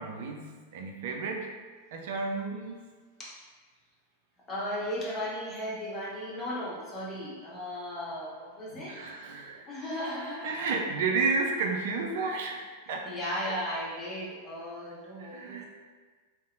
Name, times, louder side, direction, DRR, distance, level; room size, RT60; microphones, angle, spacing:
voice 1, 0.0-1.5 1.9-2.9 8.7-9.7 10.4-13.1 13.4-13.6 15.2-15.6, right 4 dB, 55° right, 2 dB, 0.3 m, -32 dB
voice 2, 4.5-9.0 9.7-10.7 13.0-15.7, equal, 20° left, -7 dB, 0.7 m, -36 dB
2.7 x 2.0 x 2.4 m, 1.5 s
figure-of-eight pair, 90°, 0 cm